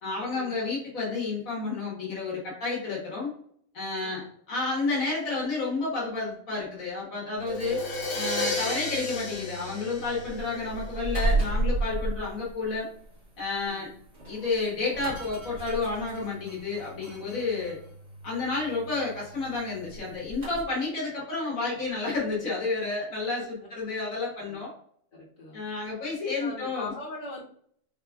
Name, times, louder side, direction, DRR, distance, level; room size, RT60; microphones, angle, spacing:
voice 1, 0.0-3.3 3.7-7.8 8.1-12.9 13.4-13.9 14.3-17.8 18.2-24.7 25.5-26.9, left 3 dB, 80° left, -5 dB, 1.8 m, -31 dB
sound 1, 7.3-20.6, right 2 dB, 60° right, 2.2 m, -35 dB
Crash cymbal, 7.5-11.2, left 2 dB, 60° left, 1.1 m, -33 dB
voice 2, 25.1-25.7 26.4-27.4, left 3 dB, 40° left, -8 dB, 2.0 m, -41 dB
5.6 x 3.4 x 2.4 m, 0.63 s
omnidirectional pair, 1.4 m